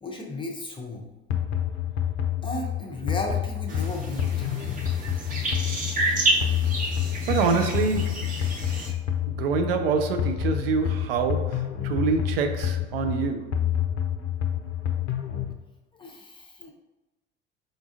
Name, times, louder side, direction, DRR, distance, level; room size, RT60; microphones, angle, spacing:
voice 1, 0.0-1.1 2.4-4.3 15.9-16.7, left 2 dB, 15° left, 0.6 m, -34 dB
sound 1, 1.3-15.5, left 10 dB, 65° left, 0.5 m, -28 dB
sound 2, 3.7-8.9, right 2 dB, 25° right, 0.9 m, -30 dB
voice 2, 7.3-8.3 9.3-13.5, right 5 dB, 60° right, 0.4 m, -26 dB
5.0 x 2.4 x 2.5 m
figure-of-eight pair, 65°, 34 cm